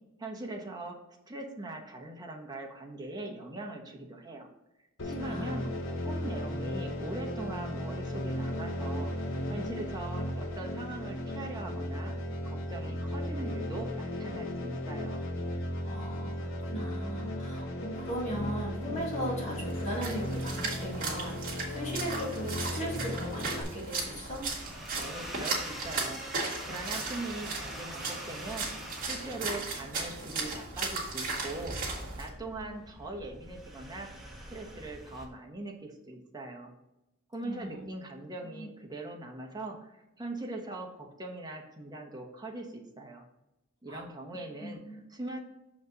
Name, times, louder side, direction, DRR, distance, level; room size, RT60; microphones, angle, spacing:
voice 1, 0.2-1.0 1.3-4.5 5.0-5.7 6.0-12.1 12.4-15.3 24.9-28.7 29.0-31.9 32.2-34.1 34.5-36.7 37.3-43.2 43.8-45.4, right 2 dB, 20° right, 0 dB, 1.2 m, -41 dB
sound 1, 5.0-23.6, left 1 dB, 65° left, 1.0 m, -35 dB
voice 2, 5.2-5.6 6.2-6.3 15.8-24.5 37.4-37.9 38.6-38.7 43.9-44.1 44.6-45.0, equal, 35° left, -3 dB, 2.2 m, -38 dB
Splash splatter, 19.5-32.3, right 3 dB, 45° right, 2.0 m, -37 dB
sound 2, 23.8-35.3, right 1 dB, ahead, 1.2 m, -45 dB
6.5 x 5.2 x 4.1 m, 0.93 s
head